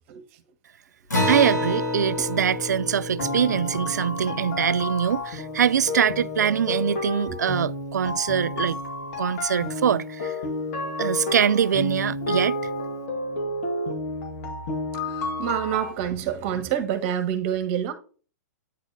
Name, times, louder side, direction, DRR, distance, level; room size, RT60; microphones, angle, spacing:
Acoustic guitar, 1.1-6.0, left 1 dB, 90° left, 2.7 m, -29 dB
voice 1, 1.3-8.8 9.2-10.4 11.0-12.6, right 8 dB, 75° right, 0.4 m, -23 dB
sound 1, 3.2-15.9, left 2 dB, 55° left, 2.1 m, -31 dB
voice 2, 15.1-17.9, right 9 dB, 45° right, 1.3 m, -27 dB
9.3 x 4.2 x 3.3 m
hypercardioid pair, 115°, 9 cm